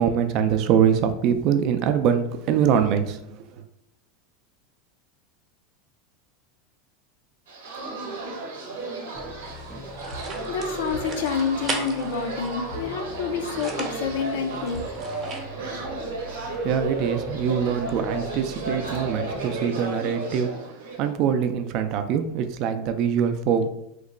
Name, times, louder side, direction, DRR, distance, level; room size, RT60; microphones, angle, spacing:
voice 1, 0.0-3.6 16.4-20.5 21.0-23.7, right 8 dB, 55° right, 8 dB, 0.4 m, -23 dB
sound 1, 7.5-21.1, right 2 dB, 90° right, 0.7 m, -33 dB
sound 2, 9.1-19.6, left 1 dB, 15° left, 0.4 m, -44 dB
sound 3, 9.5-15.4, right 4 dB, 35° right, 0.7 m, -38 dB
voice 2, 10.5-15.0, left 6 dB, 80° left, 5 dB, 0.5 m, -28 dB
2.9 x 2.1 x 3.7 m, 0.77 s
supercardioid pair, 115°, 0 cm